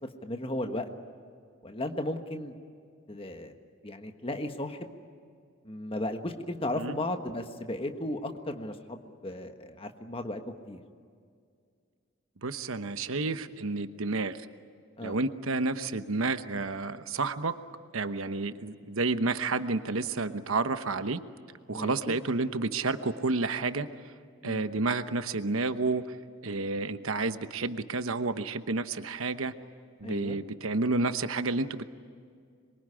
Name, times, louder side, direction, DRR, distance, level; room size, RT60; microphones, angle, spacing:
voice 1, 0.2-0.8 1.6-2.5 3.1-3.5 3.8-4.9 5.6-10.4 10.7-10.8 15.0-15.2 21.7-22.2 24.4-24.7 30.0-30.4, left 1 dB, 25° left, 5 dB, 1.4 m, -35 dB
voice 2, 12.4-14.4 15.0-17.6 17.9-21.2 21.7-23.9 24.4-26.0 26.4-29.5 30.0-31.8, right 3 dB, 80° right, 10 dB, 1.0 m, -30 dB
26.5 x 23.0 x 9.9 m, 2.2 s
head